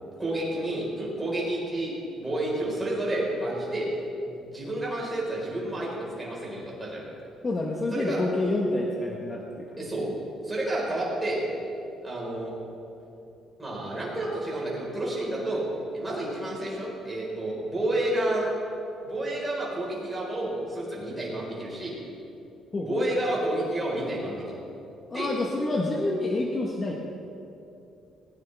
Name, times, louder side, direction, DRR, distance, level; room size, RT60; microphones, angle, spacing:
voice 1, 0.2-3.9 4.2-7.0 7.9-8.2 9.8-10.1 10.4-11.4 12.0-12.5 13.6-15.6 15.9-18.5 19.0-21.9 22.8-24.6 25.1-25.3, right 1 dB, 10° right, -5 dB, 4.5 m, -30 dB
voice 2, 7.4-9.8 22.7-23.1 25.1-27.0, left 2 dB, 20° left, -1 dB, 1.1 m, -28 dB
20.5 x 18.0 x 3.5 m, 2.8 s
cardioid pair, 175°, 0 cm